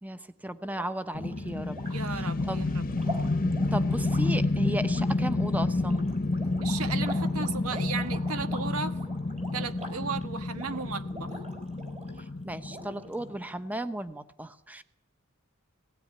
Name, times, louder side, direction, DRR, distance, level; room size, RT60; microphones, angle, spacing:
voice 1, 0.0-1.8 2.1-2.7 3.7-6.1 12.4-14.8, right 1 dB, 5° right, 11 dB, 0.9 m, -35 dB
sound 1, 0.6-12.3 12.6-13.4, equal, 30° right, 3.8 m, -44 dB
sound 2, 1.1-13.4, left 2 dB, 40° left, 0.9 m, -29 dB
voice 2, 1.9-2.8 6.6-9.0 9.5-11.3, right 5 dB, 90° right, 10 dB, 1.4 m, -35 dB
17.5 x 16.5 x 9.6 m, 0.77 s
head